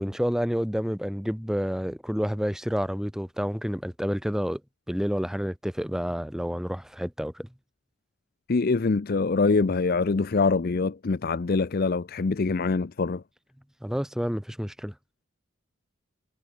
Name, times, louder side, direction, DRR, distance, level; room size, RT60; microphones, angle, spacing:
voice 1, 0.0-4.6 4.9-7.5 13.8-14.9, equal, ahead, 0.7 m, -29 dB
voice 2, 8.5-13.2, left 4 dB, 45° left, 0.5 m, -24 dB
head